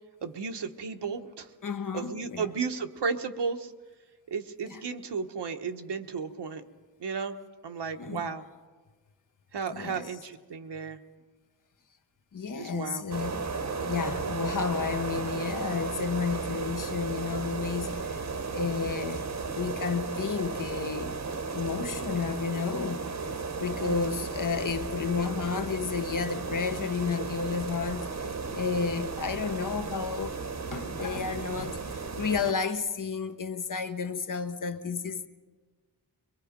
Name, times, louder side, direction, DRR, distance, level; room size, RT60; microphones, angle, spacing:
voice 1, 0.2-1.5 1.9-3.7 4.3-6.6 7.0-7.4 7.6-8.4 9.5-11.0 12.5-13.0 23.8-24.3, right 5 dB, 80° right, 1.2 m, -34 dB
voice 2, 1.6-2.6 4.6-4.8 8.0-8.3 9.7-10.2 12.3-13.4 13.8-18.2 18.5-19.3 19.5-21.2 21.5-23.0 23.6-30.4 30.7-35.3, left 5 dB, 50° left, 1.2 m, -32 dB
sound 1, 13.1-32.5, right 4 dB, 40° right, 1.1 m, -35 dB
23.0 x 22.5 x 5.2 m
wide cardioid pair, 85°, 41 cm